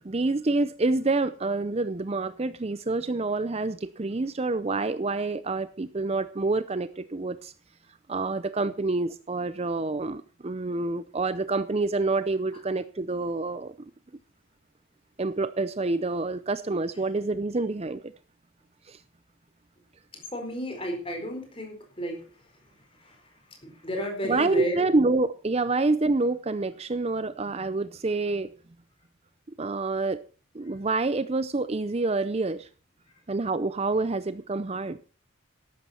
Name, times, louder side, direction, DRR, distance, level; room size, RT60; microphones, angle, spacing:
voice 1, 0.0-7.5 8.1-13.7 15.2-18.1 18.9-19.0 24.2-28.5 29.6-30.2 30.5-32.7 33.3-35.0, right 3 dB, 30° right, 14 dB, 0.5 m, -27 dB
voice 2, 20.1-22.3 23.0-23.2 23.6-24.8, equal, 25° left, 3 dB, 4.5 m, -32 dB
13.5 x 12.0 x 4.3 m, 0.38 s
head